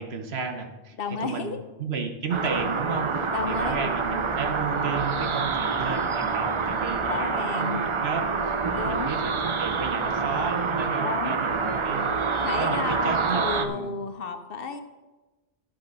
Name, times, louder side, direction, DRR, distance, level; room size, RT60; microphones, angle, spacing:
voice 1, 0.0-7.7 8.0-8.5 8.8-12.3 12.6-14.0, right 5 dB, 65° right, 6 dB, 1.2 m, -33 dB
voice 2, 1.0-1.6 3.3-3.9 7.0-7.8 8.7-9.1 11.0-11.4 12.4-14.8, left 4 dB, 60° left, 8 dB, 0.9 m, -32 dB
sound 1, 2.3-13.7, right 5 dB, 40° right, 0.4 m, -27 dB
11.5 x 6.1 x 5.3 m, 1.2 s
omnidirectional pair, 1.2 m